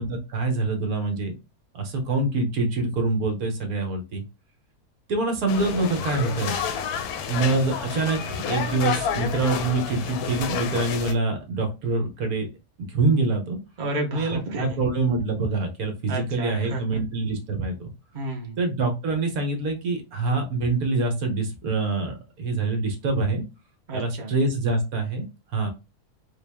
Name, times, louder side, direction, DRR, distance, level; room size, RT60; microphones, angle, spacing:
voice 1, 0.0-1.3 1.7-4.2 5.1-6.6 7.3-12.5 12.9-13.6 14.1-17.9 18.6-23.4 23.9-25.3 25.5-25.7, right 3 dB, 70° right, 4 dB, 1.3 m, -25 dB
sound 1, 5.5-11.1, left 7 dB, 75° left, 1.1 m, -30 dB
voice 2, 13.8-14.8 16.1-16.8 18.1-18.6 23.9-24.3, right 1 dB, 40° right, 2 dB, 0.7 m, -31 dB
3.8 x 2.3 x 3.3 m, 0.26 s
omnidirectional pair, 1.7 m